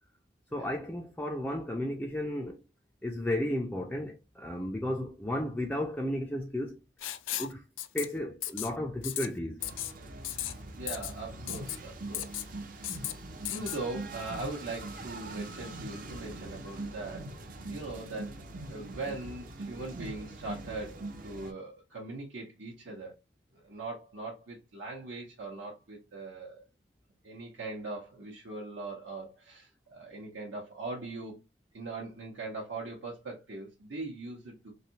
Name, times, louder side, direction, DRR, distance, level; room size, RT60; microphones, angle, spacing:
voice 1, 0.5-2.6 3.0-6.8 7.4-7.6 7.9-9.6, left 1 dB, 5° left, 0.3 m, -33 dB
Writing, 7.0-7.5 7.8-8.1 8.4-8.7 9.0-9.3 9.6-9.9 10.2-10.5 10.9-11.1 11.5-11.8 12.1-12.5 12.8-13.1 13.5-13.8, left 13 dB, 90° left, 0.4 m, -35 dB
sound 1, 9.6-21.5, right 2 dB, 45° right, 0.6 m, -42 dB
voice 2, 10.8-12.9 13.3-17.3 17.7-18.4 18.7-23.1 23.6-26.6 27.2-31.4 31.7-34.7, right 2 dB, 80° right, 0.8 m, -41 dB
3.2 x 2.6 x 2.8 m
head